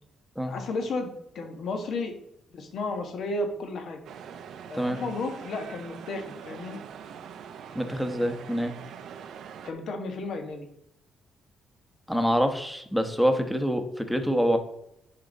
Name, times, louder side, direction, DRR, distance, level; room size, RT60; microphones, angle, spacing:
voice 1, 0.4-2.1 2.5-4.0 4.7-6.8 9.6-10.7, left 2 dB, 65° left, 5 dB, 1.4 m, -33 dB
sound 1, 4.0-9.7, right 8 dB, 75° right, 0.6 m, -43 dB
voice 2, 7.7-8.7 12.1-14.6, equal, ahead, 6 dB, 1.0 m, -26 dB
10.0 x 3.8 x 4.0 m, 0.78 s
cardioid pair, 90°, 0 cm